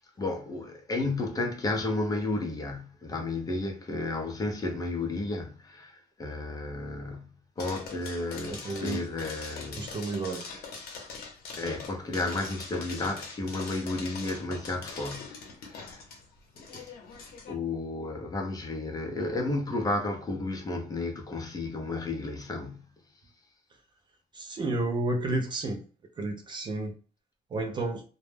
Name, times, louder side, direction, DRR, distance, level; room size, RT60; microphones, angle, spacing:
voice 1, 0.2-10.0 11.6-16.0 16.6-16.9 17.5-22.9, left 2 dB, 25° left, 0.5 m, -33 dB
sound 1, 7.6-17.6, left 4 dB, 70° left, 0.7 m, -43 dB
voice 2, 8.5-9.0 9.8-10.5 24.3-25.8 26.2-26.9 27.5-28.0, right 2 dB, 30° right, 0.3 m, -31 dB
2.1 x 2.0 x 3.1 m
cardioid pair, 160°, 16 cm